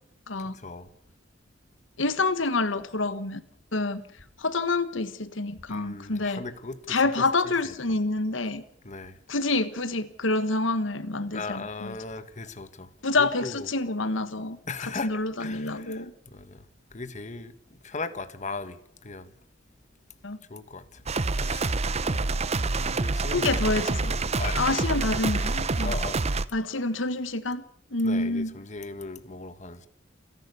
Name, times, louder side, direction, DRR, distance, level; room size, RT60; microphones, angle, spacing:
voice 1, 0.4-0.9 5.7-7.7 8.8-9.2 11.3-12.9 13.2-13.7 14.6-16.6 16.9-19.3 20.5-21.0 21.3-22.3 22.7-23.6 24.0-24.9 25.8-26.2 28.0-29.9, left 3 dB, 40° left, 1.5 m, -38 dB
voice 2, 2.0-3.4 3.7-4.0 4.4-6.4 6.9-8.6 9.3-11.9 13.0-14.6 15.0-16.1 20.2-20.4 23.3-24.1 24.5-25.9 26.5-27.6 27.9-28.5, left 3 dB, 90° left, 1.5 m, -27 dB
sound 1, 21.1-26.4, right 3 dB, 35° right, 0.8 m, -27 dB
28.5 x 11.5 x 8.2 m
head